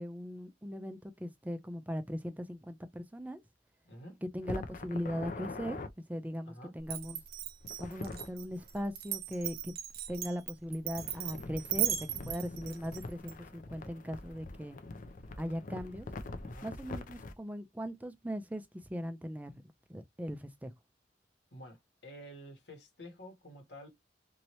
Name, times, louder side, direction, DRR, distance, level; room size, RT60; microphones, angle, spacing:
voice 1, 0.0-3.4 4.2-5.8 6.1-7.2 7.8-9.8 10.1-14.8 15.4-16.1 16.6-19.6 19.9-20.7, equal, 10° right, 0.4 m, -39 dB
voice 2, 3.8-4.2 6.5-6.7 16.5-16.7 21.5-23.9, equal, 75° left, 1.3 m, -50 dB
sound 1, 4.4-5.9 7.6-8.3 11.0-17.4, left 2 dB, 45° left, 0.5 m, -44 dB
Glass, 6.8-13.3, right 11 dB, 55° right, 0.6 m, -37 dB
2.9 x 2.7 x 3.0 m
head